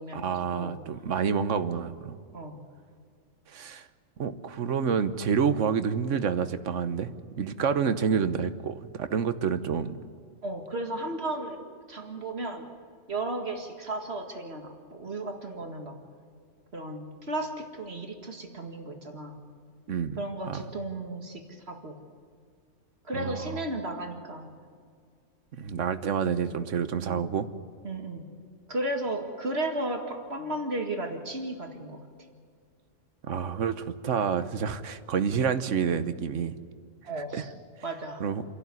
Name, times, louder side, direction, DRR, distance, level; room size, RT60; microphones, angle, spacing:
voice 1, 0.1-2.2 3.5-3.9 4.2-10.0 19.9-20.2 20.5-20.6 23.1-23.6 25.5-27.5 33.2-36.6 37.3-37.4 38.2-38.4, right 6 dB, 80° right, 11 dB, 1.3 m, -28 dB
voice 2, 10.4-12.7 13.1-16.0 16.7-19.4 20.2-22.0 23.0-24.5 27.0-27.2 27.8-28.2 28.7-32.0 37.0-37.5 37.8-38.2, right 1 dB, 60° right, 3 dB, 2.2 m, -34 dB
29.0 x 11.5 x 9.6 m, 2.2 s
omnidirectional pair, 1.3 m